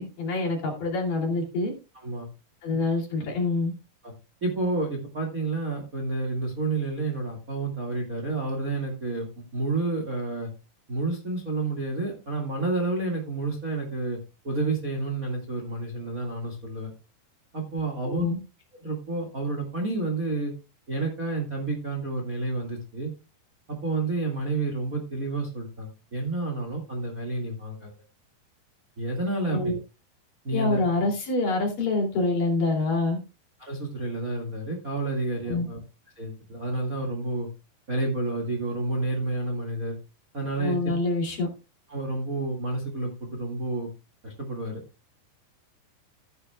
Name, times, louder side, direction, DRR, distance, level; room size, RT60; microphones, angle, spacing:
voice 1, 0.0-1.7 2.6-3.7 18.0-18.4 29.5-29.8 30.5-33.2 35.5-35.7 40.6-41.5, left 3 dB, 55° left, 0 dB, 4.3 m, -26 dB
voice 2, 4.4-10.5 10.9-14.2 14.4-16.9 17.5-18.2 18.7-20.5 20.9-23.1 23.7-27.9 29.0-29.7 30.4-30.8 33.6-35.8 36.1-37.5 37.9-40.0 40.3-40.8 41.9-43.9 44.2-44.8, right 2 dB, 30° right, 2 dB, 1.6 m, -30 dB
14.0 x 10.5 x 2.3 m, 0.30 s
omnidirectional pair, 4.8 m